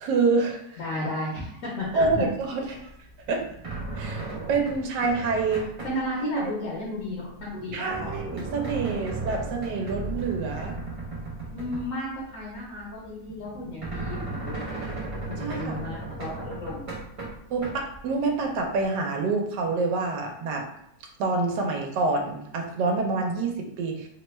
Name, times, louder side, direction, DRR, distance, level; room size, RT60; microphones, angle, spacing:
voice 1, 0.0-0.8 1.9-2.8 3.3-3.4 4.0-5.7 6.2-6.5 7.7-10.7 15.4-15.8 17.5-20.6 21.2-24.1, right 3 dB, 85° right, 2 dB, 1.2 m, -27 dB
voice 2, 0.8-2.2 5.5-8.1 11.5-14.8 15.3-16.9, left 1 dB, 60° left, -5 dB, 1.0 m, -33 dB
sound 1, 1.8-2.4 2.8-6.0 6.7-12.2 12.5-12.6 13.3-18.0 18.6-18.7, right 2 dB, 55° right, 0.3 m, -35 dB
3.1 x 2.2 x 3.0 m, 0.76 s
omnidirectional pair, 1.8 m